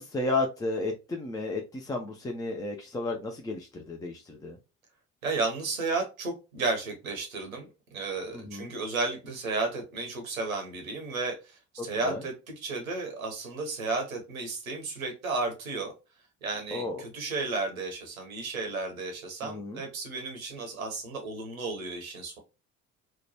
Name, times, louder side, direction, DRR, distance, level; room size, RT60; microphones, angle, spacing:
voice 1, 0.0-4.6 8.3-8.7 11.8-12.2 16.7-17.0 19.4-19.8, left 2 dB, 10° left, 0.3 m, -33 dB
voice 2, 5.2-12.3 12.6-15.9 16.4-22.4, right 3 dB, 85° right, 0.7 m, -33 dB
2.9 x 2.1 x 2.6 m
figure-of-eight pair, 50°, 41 cm